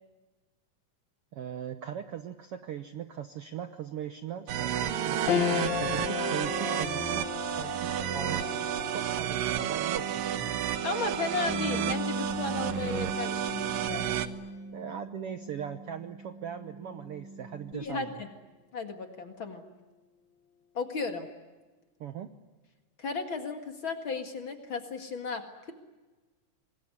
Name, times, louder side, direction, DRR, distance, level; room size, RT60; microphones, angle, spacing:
voice 1, 1.3-8.6 8.9-10.5 14.7-18.2 22.0-22.3, right 9 dB, 65° right, 9 dB, 1.5 m, -39 dB
sound 1, 4.5-14.3, right 10 dB, 85° right, 2.9 m, -31 dB
sound 2, 5.3-14.9 15.4-15.5 16.8-17.2, left 10 dB, 80° left, 1.0 m, -37 dB
voice 2, 10.8-14.0 17.7-18.3 18.7-19.6 20.7-21.3 23.0-25.7, left 4 dB, 45° left, 6 dB, 2.3 m, -34 dB
Bass guitar, 11.5-17.7, right 2 dB, 5° right, 1.1 m, -39 dB
26.0 x 21.0 x 9.7 m, 1.2 s
omnidirectional pair, 3.8 m